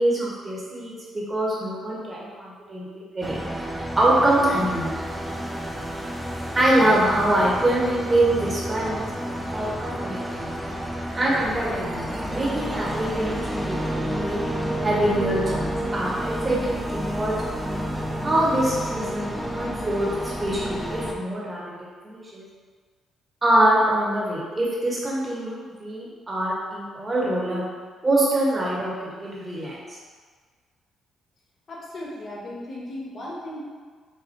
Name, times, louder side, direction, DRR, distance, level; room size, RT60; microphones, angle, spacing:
voice 1, 0.0-3.4 3.9-4.9 6.5-9.1 9.5-10.5 11.1-14.4 14.8-17.3 18.2-20.1 20.4-22.4 23.4-27.7 28.0-29.8, right 1 dB, 25° right, -5 dB, 1.4 m, -24 dB
sound 1, 3.2-21.1, equal, 5° right, 0.5 m, -30 dB
voice 2, 31.7-33.6, left 1 dB, 40° left, -6 dB, 1.4 m, -36 dB
5.2 x 2.5 x 3.8 m, 1.5 s
cardioid pair, 90°, 0 cm